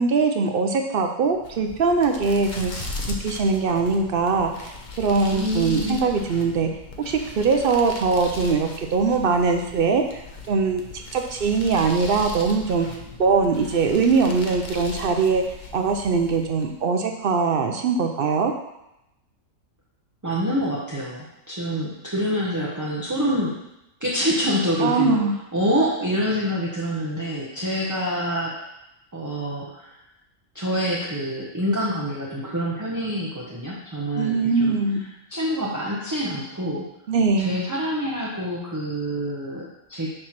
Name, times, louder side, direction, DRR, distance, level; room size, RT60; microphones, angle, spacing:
voice 1, 0.0-2.7 3.2-6.7 7.0-10.2 10.5-10.8 11.1-15.4 15.7-18.5 24.8-25.3 34.2-35.0 37.1-37.5, right 4 dB, 60° right, 4 dB, 0.6 m, -22 dB
sound 1, 1.3-16.8, left 2 dB, 45° left, 0.7 m, -38 dB
voice 2, 5.3-6.0 20.2-23.6 24.0-25.2 25.5-28.5 29.1-30.0 30.5-34.8 35.3-36.9 37.4-40.1, equal, 15° right, -5 dB, 0.7 m, -26 dB
6.4 x 3.1 x 5.8 m, 0.87 s
omnidirectional pair, 1.4 m